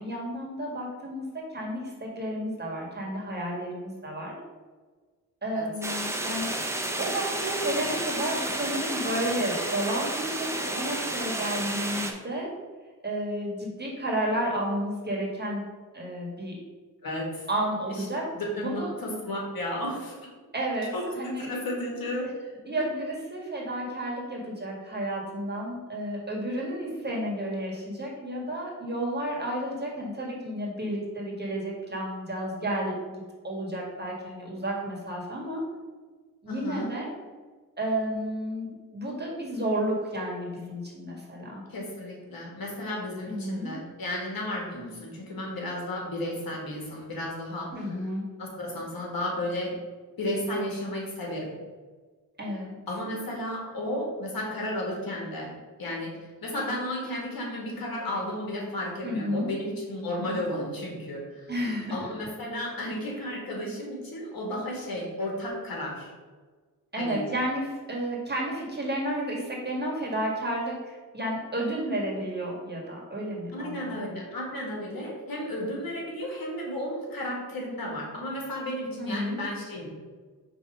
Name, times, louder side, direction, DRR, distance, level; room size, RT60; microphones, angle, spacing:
voice 1, 0.0-4.4 5.4-6.6 7.0-12.5 13.0-15.7 15.9-16.6 17.5-18.3 18.6-18.9 20.5-21.5 22.7-35.6 36.4-37.1 37.8-41.6 43.3-43.8 47.7-48.3 52.4-52.8 59.0-59.5 61.5-62.0 66.9-74.2 79.0-79.4, right 1 dB, 25° right, -2 dB, 1.8 m, -31 dB
sound 1, 5.8-12.1, right 1 dB, 5° right, 0.7 m, -31 dB
voice 2, 17.0-17.5 17.9-18.0 18.3-20.1 20.9-22.3 22.7-22.8 36.5-36.9 41.7-48.1 48.4-49.7 50.2-51.5 52.9-55.5 55.8-61.5 61.9-66.1 67.0-67.2 73.5-79.9, left 1 dB, 70° left, -2 dB, 1.8 m, -33 dB
5.3 x 3.3 x 5.5 m, 1.4 s
cardioid pair, 80°, 37 cm